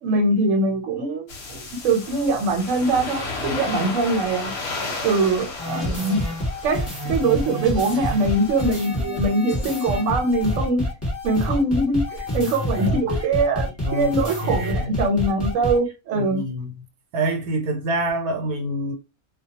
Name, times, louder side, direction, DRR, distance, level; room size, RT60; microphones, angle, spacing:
voice 1, 0.0-4.5 5.0-6.2 6.6-10.8 11.2-16.4, right 2 dB, 65° right, 1.0 m, -22 dB
sound 1, 1.3-8.8, left 3 dB, 60° left, 0.8 m, -34 dB
sound 2, 5.6-15.8, left 1 dB, 10° left, 1.0 m, -27 dB
voice 2, 14.4-14.9 16.2-16.7 17.1-18.9, right 1 dB, 80° right, 1.1 m, -26 dB
2.3 x 2.2 x 2.7 m
omnidirectional pair, 1.6 m